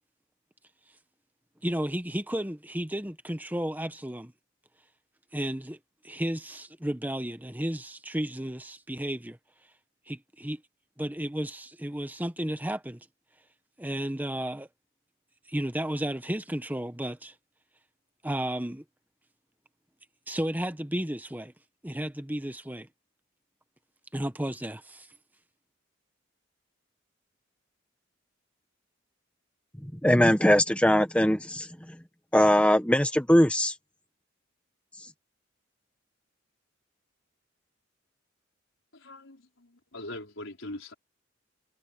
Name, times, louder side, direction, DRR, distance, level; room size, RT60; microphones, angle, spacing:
voice 1, 1.6-4.3 5.3-5.8 6.0-9.4 10.1-10.6 11.0-13.0 13.8-14.7 15.5-17.3 18.2-18.8 20.3-21.5 21.8-22.9 24.1-25.1, right 1 dB, 10° right, 1.4 m, -33 dB
voice 2, 29.8-32.0 32.3-33.7, equal, 5° left, 1.1 m, -21 dB
voice 3, 38.9-40.9, left 1 dB, 85° left, 4.7 m, -42 dB
head